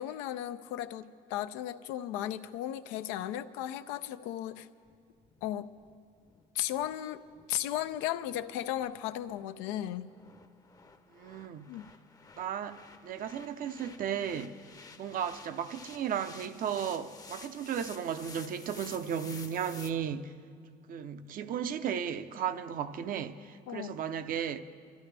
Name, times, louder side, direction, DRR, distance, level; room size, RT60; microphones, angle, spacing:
voice 1, 0.0-4.7 5.4-5.7 6.5-7.2 7.5-10.1 11.7-11.8 23.7-24.0, left 12 dB, 85° left, 0.6 m, -35 dB
sound 1, 4.8-19.9, left 4 dB, 20° left, 0.7 m, -52 dB
voice 2, 11.1-11.7 12.4-14.5 15.0-20.3 20.9-24.6, right 8 dB, 50° right, 0.7 m, -35 dB
25.0 x 13.5 x 3.4 m
supercardioid pair, 100°, 18 cm